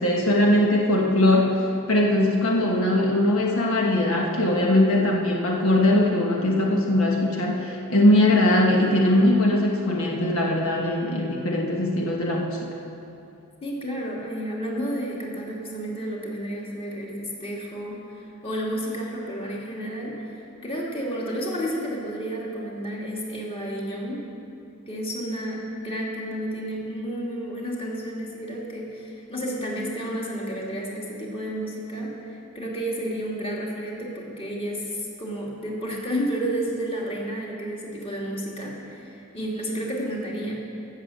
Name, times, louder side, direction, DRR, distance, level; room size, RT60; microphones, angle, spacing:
voice 1, 0.0-12.7, left 1 dB, 75° left, -1 dB, 1.3 m, -21 dB
voice 2, 13.6-24.2 24.9-40.6, equal, 25° left, -4 dB, 2.3 m, -31 dB
15.5 x 6.8 x 7.7 m, 2.7 s
head